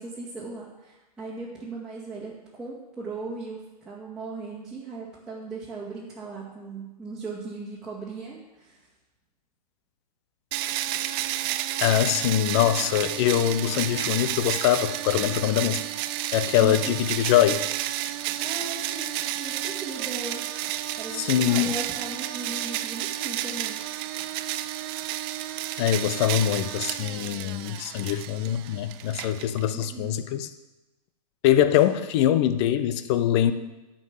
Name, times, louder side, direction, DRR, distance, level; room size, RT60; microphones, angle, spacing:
voice 1, 0.0-8.9 16.6-17.0 18.4-20.4 21.0-24.3 29.7-30.2, right 3 dB, 5° right, -8 dB, 2.0 m, -38 dB
sound 1, 10.5-29.9, right 13 dB, 35° right, 0.5 m, -31 dB
voice 2, 11.8-15.8 16.3-17.6 21.1-21.8 25.8-30.5 31.4-33.5, left 11 dB, 40° left, 12 dB, 0.8 m, -23 dB
10.5 x 5.4 x 7.2 m, 1.0 s
hypercardioid pair, 120°, 21 cm